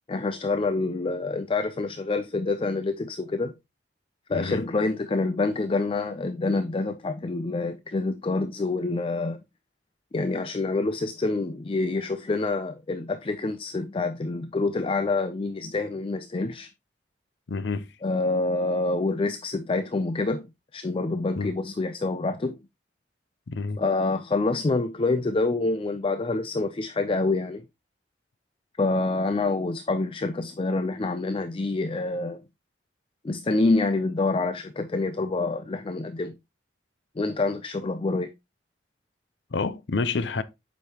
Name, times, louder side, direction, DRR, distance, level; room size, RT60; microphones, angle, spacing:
voice 1, 0.1-3.5 4.3-9.4 10.1-16.7 18.0-20.5 20.7-22.6 23.8-27.6 28.8-32.4 33.2-36.3 37.2-38.3, left 3 dB, 30° left, 0.4 m, -27 dB
voice 2, 4.3-4.6 17.5-17.9 21.4-21.5 23.5-23.8 39.5-40.4, left 4 dB, 80° left, 0.6 m, -28 dB
7.9 x 5.2 x 2.9 m
head